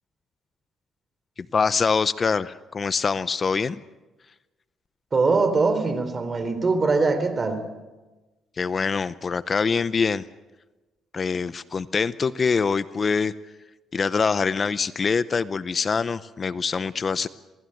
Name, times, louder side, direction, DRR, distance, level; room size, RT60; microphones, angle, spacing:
voice 1, 1.4-3.8 8.6-10.2 11.1-13.3 13.9-17.3, left 5 dB, 40° left, 15 dB, 0.7 m, -24 dB
voice 2, 5.1-7.7, right 3 dB, 35° right, 10 dB, 3.8 m, -22 dB
27.5 x 19.0 x 7.9 m, 1.2 s
cardioid pair, 90°, 0 cm